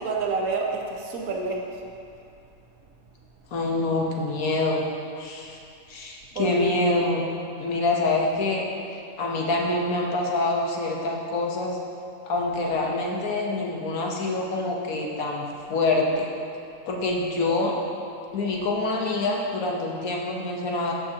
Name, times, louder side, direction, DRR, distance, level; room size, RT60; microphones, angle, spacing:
voice 1, 0.0-1.7 6.3-7.0, right 4 dB, 90° right, -1 dB, 1.4 m, -28 dB
voice 2, 3.5-4.8 5.2-5.6 5.9-7.2 7.6-8.7 9.2-11.8 12.3-16.3 16.9-17.7 18.3-20.9, left 2 dB, 80° left, -1 dB, 1.4 m, -26 dB
13.5 x 5.5 x 2.8 m, 2.6 s
omnidirectional pair, 1.5 m